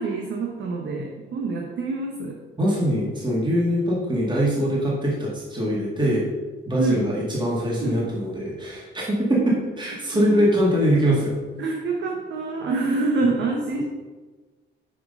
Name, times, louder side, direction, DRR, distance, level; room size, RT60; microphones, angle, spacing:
voice 1, 0.0-2.4 6.8-7.0 7.8-7.9 10.1-10.4 11.6-13.8, right 3 dB, 70° right, 0 dB, 1.1 m, -26 dB
voice 2, 2.6-6.3 6.7-11.4, equal, 25° right, -5 dB, 2.1 m, -22 dB
6.3 x 4.7 x 5.3 m, 1.3 s
cardioid pair, 90°, 20 cm